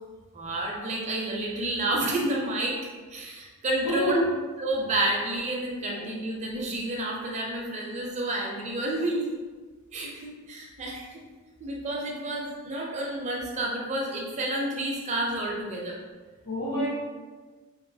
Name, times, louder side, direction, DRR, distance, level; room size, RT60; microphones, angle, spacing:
voice 1, 0.3-2.8 3.1-4.2 4.6-9.3 9.9-11.2 11.6-16.0, right 1 dB, 30° right, -2 dB, 0.4 m, -30 dB
voice 2, 3.8-4.3 5.9-6.1 16.4-16.9, equal, 55° left, -8 dB, 1.3 m, -27 dB
2.9 x 2.6 x 2.6 m, 1.4 s
head